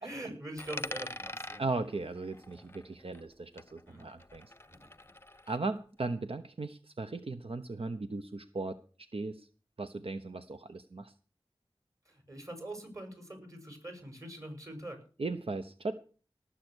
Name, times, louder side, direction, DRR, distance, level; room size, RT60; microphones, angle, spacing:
voice 1, 0.0-1.6 2.5-2.7 3.9-4.1 4.7-4.9 12.1-15.0, right 1 dB, 35° right, 6 dB, 6.2 m, -44 dB
Coin (dropping), 0.6-3.3 3.6-5.6, left 1 dB, 25° left, 0.7 m, -44 dB
voice 2, 1.6-4.5 5.5-8.8 9.1-9.5 9.8-11.1 15.2-15.9, right 3 dB, 75° right, 9 dB, 0.9 m, -37 dB
18.5 x 7.6 x 6.4 m, 0.39 s
wide cardioid pair, 50°, 10 cm